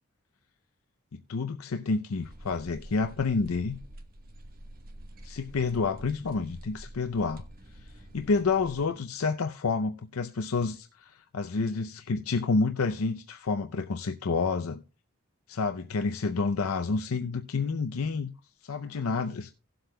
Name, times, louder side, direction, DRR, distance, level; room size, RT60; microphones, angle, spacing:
voice 1, 1.1-3.8 5.2-7.4 8.1-14.8 15.5-18.3 18.6-19.5, left 4 dB, 90° left, 0.6 m, -29 dB
sound 1, 2.2-8.9, right 1 dB, 45° right, 1.1 m, -47 dB
17.5 x 7.8 x 2.2 m
head